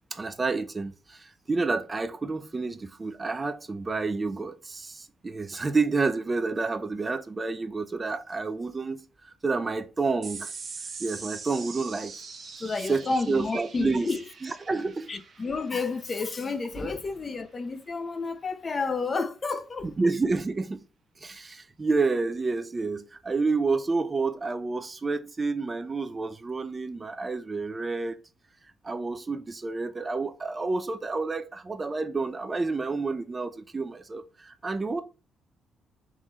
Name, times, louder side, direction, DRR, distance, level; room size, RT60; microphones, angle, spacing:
voice 1, 0.1-10.5 11.0-12.1 12.9-14.1 14.4-15.1 16.8-16.9 19.8-20.8 21.2-28.2 28.8-35.0, right 3 dB, 25° right, 0.4 m, -29 dB
sound 1, 10.2-17.0, right 5 dB, 50° right, 0.9 m, -43 dB
voice 2, 12.6-14.3 14.8-14.9 15.1-19.9, left 4 dB, 35° left, 0.6 m, -30 dB
3.7 x 3.1 x 3.9 m
cardioid pair, 90°, 0 cm